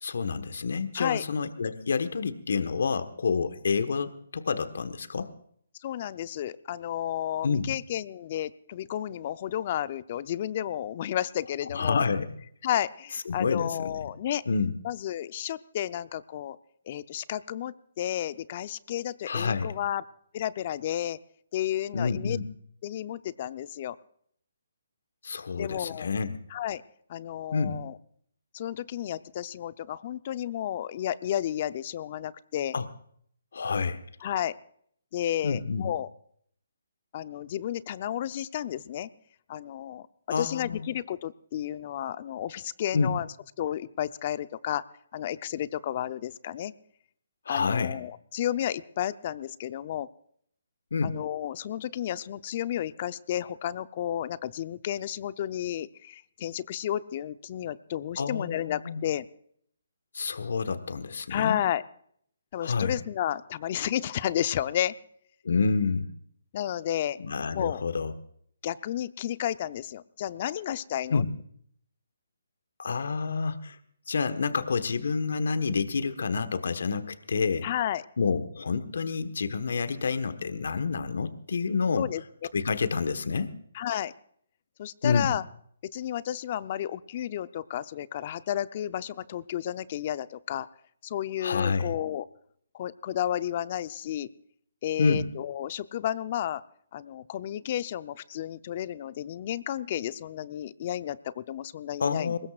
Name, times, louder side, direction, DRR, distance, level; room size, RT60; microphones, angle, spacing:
voice 1, 0.0-5.3 7.4-7.7 11.7-12.3 13.3-14.0 14.5-14.7 19.3-19.7 21.9-22.5 25.2-26.4 27.5-27.8 32.7-32.9 33.5-34.0 35.4-35.9 40.3-40.9 42.9-43.1 47.4-48.0 50.9-51.2 58.2-59.0 60.1-61.6 62.6-63.0 65.4-66.1 67.2-68.1 71.1-71.3 72.8-73.8 74.1-77.7 78.2-82.1 82.5-83.5 85.0-85.3 91.4-91.9 95.0-95.2 102.0-102.4, left 5 dB, 65° left, 11 dB, 1.4 m, -28 dB
voice 2, 5.8-12.0 12.6-14.4 14.8-16.6 16.9-20.0 20.3-21.2 21.5-22.4 22.8-24.0 25.6-26.1 26.5-26.8 27.1-28.0 28.5-32.8 34.2-34.6 35.1-36.1 37.1-39.1 39.5-40.1 40.4-43.3 43.6-44.8 45.1-46.7 47.5-50.1 51.0-59.3 61.3-61.8 62.5-65.0 66.5-67.2 67.5-67.8 68.6-71.2 77.6-78.0 82.0-82.2 83.7-84.1 84.8-85.4 85.9-90.7 91.0-92.2 92.7-94.3 94.8-96.6 96.9-102.4, left 11 dB, 40° left, 14 dB, 0.7 m, -32 dB
22.0 x 20.0 x 2.5 m, 0.64 s
hypercardioid pair, 150°, 0 cm